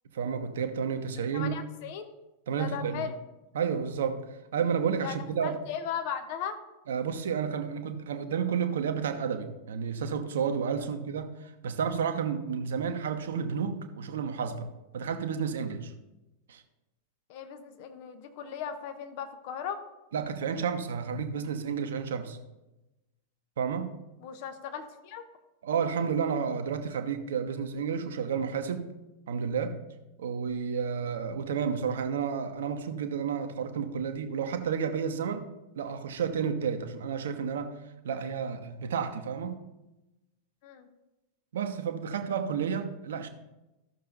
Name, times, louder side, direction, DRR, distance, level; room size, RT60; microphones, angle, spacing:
voice 1, 0.1-1.5 2.5-3.1 3.5-4.2 4.5-5.6 6.9-15.9 16.5-16.6 20.1-22.4 23.6-24.0 25.6-29.0 29.3-29.8 30.2-35.5 35.7-37.7 38.0-39.6 41.5-43.3, right 6 dB, 60° right, 7 dB, 0.9 m, -31 dB
voice 2, 1.3-2.1 2.6-3.2 5.0-6.6 17.3-19.8 24.2-25.2 40.6-40.9, left 8 dB, 50° left, 8 dB, 1.0 m, -37 dB
13.5 x 6.6 x 4.0 m, 1.0 s
figure-of-eight pair, 90°, 0 cm